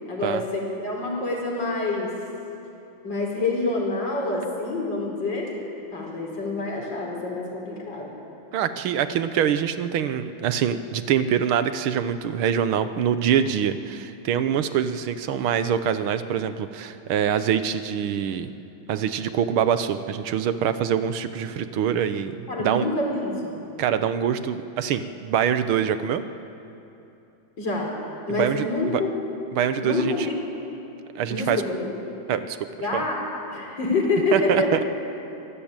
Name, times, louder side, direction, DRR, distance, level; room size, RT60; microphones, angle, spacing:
voice 1, 0.1-2.1 3.0-5.5 5.9-8.1 22.5-23.6 27.6-27.9 28.3-29.1 29.8-30.4 31.3-31.9 32.8-33.2 33.5-34.7, left 2 dB, 60° left, -1 dB, 5.2 m, -27 dB
voice 2, 8.5-18.5 18.9-22.9 23.8-26.2 28.4-28.7 29.5-30.3 31.2-31.6 32.3-32.6 32.9-33.0 34.3-34.8, right 8 dB, 90° right, 11 dB, 1.8 m, -24 dB
25.0 x 17.5 x 8.9 m, 2.8 s
omnidirectional pair, 2.2 m